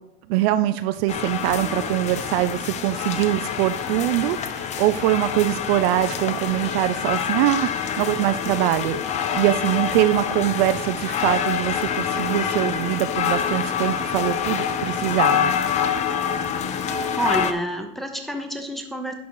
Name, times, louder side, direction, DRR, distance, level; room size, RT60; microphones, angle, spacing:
voice 1, 0.3-15.5, right 14 dB, 55° right, 12 dB, 0.5 m, -23 dB
sound 1, 1.1-17.5, left 8 dB, 20° left, 0.3 m, -26 dB
voice 2, 17.0-19.1, right 1 dB, ahead, 3 dB, 0.8 m, -28 dB
10.5 x 4.1 x 4.6 m, 0.88 s
supercardioid pair, 135°, 37 cm